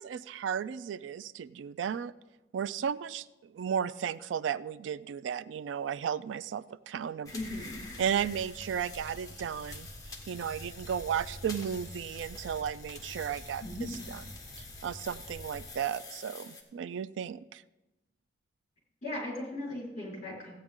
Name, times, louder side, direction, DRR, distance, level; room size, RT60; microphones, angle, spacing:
voice 1, 0.0-2.1 2.5-7.3 8.0-9.9 10.3-13.6 14.1-14.2 14.8-17.6, right 8 dB, 75° right, 17 dB, 0.3 m, -34 dB
voice 2, 7.3-7.9 13.6-14.0 19.0-20.6, left 1 dB, 40° left, -4 dB, 4.4 m, -38 dB
sound 1, 7.3-16.6, left 2 dB, 20° left, 1.4 m, -45 dB
15.0 x 8.7 x 3.7 m, 1.0 s
head